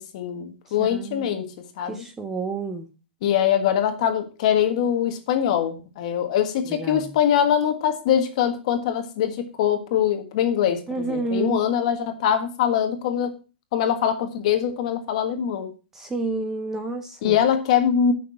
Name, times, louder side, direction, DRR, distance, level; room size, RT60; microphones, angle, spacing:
voice 1, 0.0-2.0 3.2-13.3 13.7-15.7 17.2-18.1, left 9 dB, 40° left, 7 dB, 1.5 m, -23 dB
voice 2, 0.8-1.4 1.8-2.9 6.7-7.1 10.9-11.6 15.9-17.4, right 3 dB, 5° right, 6 dB, 0.6 m, -30 dB
9.2 x 6.2 x 6.1 m, 0.34 s
hypercardioid pair, 170°, 6 cm